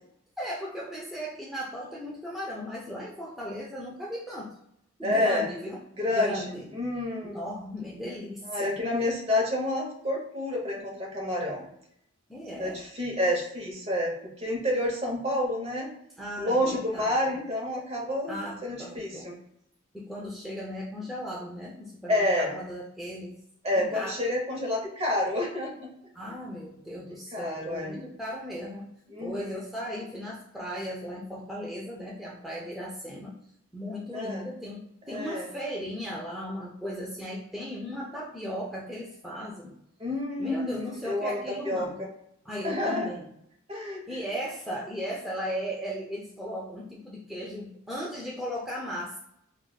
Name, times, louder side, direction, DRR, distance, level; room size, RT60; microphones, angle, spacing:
voice 1, 0.4-4.6 5.0-5.8 6.1-6.7 7.2-8.8 12.3-12.8 16.2-17.4 18.3-19.3 19.9-23.3 23.8-24.1 26.1-28.9 29.2-33.4 33.7-39.8 40.4-42.0 42.5-43.3 44.1-49.2, equal, ahead, -5 dB, 0.4 m, -36 dB
voice 2, 5.0-5.5 6.0-7.4 8.4-11.7 12.5-15.9 16.4-19.3 22.1-22.6 23.6-25.9 27.3-28.0 29.1-29.6 34.1-34.5 35.1-35.5 40.0-42.1 42.6-43.1 43.7-44.2, left 1 dB, 30° right, -1 dB, 0.9 m, -29 dB
4.7 x 2.3 x 2.3 m, 0.76 s
head